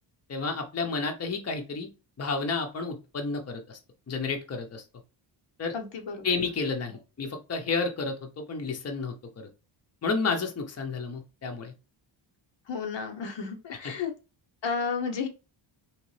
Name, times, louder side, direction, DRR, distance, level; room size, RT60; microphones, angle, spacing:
voice 1, 0.3-1.9 2.2-3.8 4.1-4.8 5.6-5.7 6.2-9.5 10.0-11.7, left 4 dB, 30° left, 4 dB, 0.8 m, -31 dB
voice 2, 5.7-6.3 12.7-14.1 14.6-15.3, left 5 dB, 65° left, 4 dB, 0.9 m, -32 dB
4.2 x 3.2 x 3.2 m, 0.30 s
wide cardioid pair, 130°, 48 cm